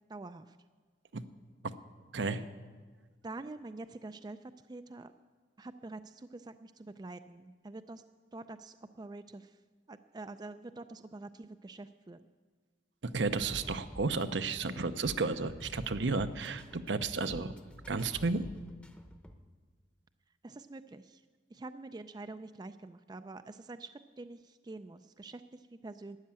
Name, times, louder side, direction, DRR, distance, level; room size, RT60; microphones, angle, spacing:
voice 1, 0.1-0.6 3.2-5.1 5.6-8.0 8.3-9.6 9.9-12.3 20.4-21.2 21.5-26.2, right 2 dB, 20° right, 11 dB, 0.3 m, -46 dB
voice 2, 2.1-2.5 13.1-17.5 17.9-18.4, right 3 dB, 75° right, 10 dB, 0.7 m, -32 dB
sound 1, 13.2-19.4, equal, 5° left, 0.8 m, -48 dB
13.0 x 9.8 x 8.7 m, 1.5 s
head